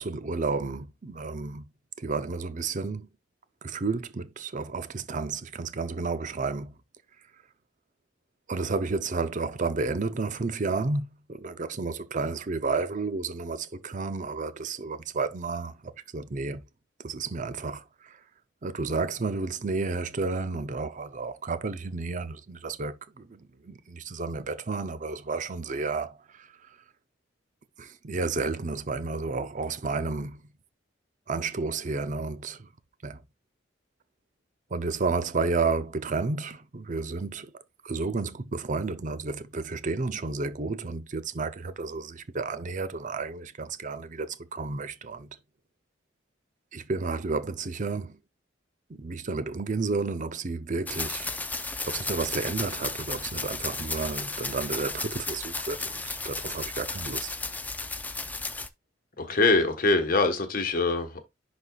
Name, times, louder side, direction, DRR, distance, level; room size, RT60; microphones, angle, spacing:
voice 1, 0.0-1.7 2.0-3.1 3.6-6.8 8.5-16.6 17.0-18.2 18.6-26.8 27.8-30.4 31.3-32.7 33.0-33.2 34.7-37.5 37.8-45.3 46.7-48.2 48.9-51.3 51.9-57.4, right 3 dB, 40° right, 0.6 m, -31 dB
sound 1, 50.9-58.7, left 3 dB, 10° left, 0.4 m, -34 dB
voice 2, 59.2-61.2, left 3 dB, 50° left, 1.2 m, -23 dB
11.0 x 4.1 x 2.3 m
head